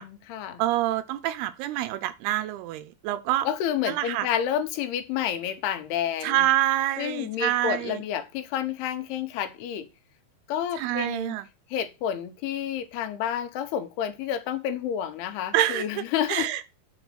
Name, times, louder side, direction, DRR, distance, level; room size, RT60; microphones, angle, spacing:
voice 1, 0.0-0.6 3.4-6.5 7.0-9.9 10.5-11.4 11.7-16.6, left 9 dB, 85° left, 2.9 m, -30 dB
voice 2, 0.6-3.5 3.9-4.3 6.2-8.0 10.8-11.5 15.5-16.0 16.3-16.6, right 14 dB, 85° right, 2.7 m, -26 dB
7.0 x 4.1 x 6.3 m
omnidirectional pair, 4.5 m